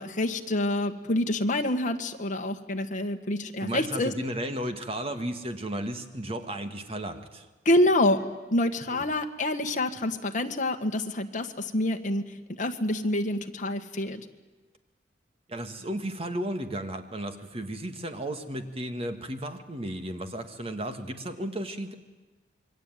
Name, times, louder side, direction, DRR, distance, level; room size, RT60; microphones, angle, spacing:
voice 1, 0.0-4.1 7.6-8.2 8.5-12.2 12.6-14.2, left 1 dB, 45° left, 5 dB, 1.7 m, -27 dB
voice 2, 3.6-7.5 8.9-9.0 15.5-21.9, right 1 dB, 30° right, 7 dB, 2.0 m, -34 dB
27.5 x 22.5 x 9.3 m, 1.2 s
head